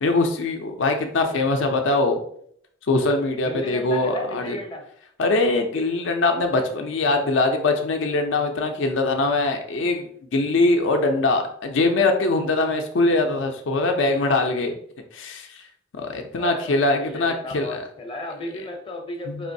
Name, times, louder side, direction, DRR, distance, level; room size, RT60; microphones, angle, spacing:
voice 1, 0.0-2.2 2.9-4.6 5.2-14.7 15.1-15.6 15.9-17.8 19.3-19.4, left 2 dB, 70° left, 4 dB, 0.5 m, -22 dB
voice 2, 3.4-4.8 16.3-19.5, left 1 dB, 25° left, 2 dB, 0.6 m, -34 dB
4.8 x 3.0 x 2.6 m, 0.65 s
head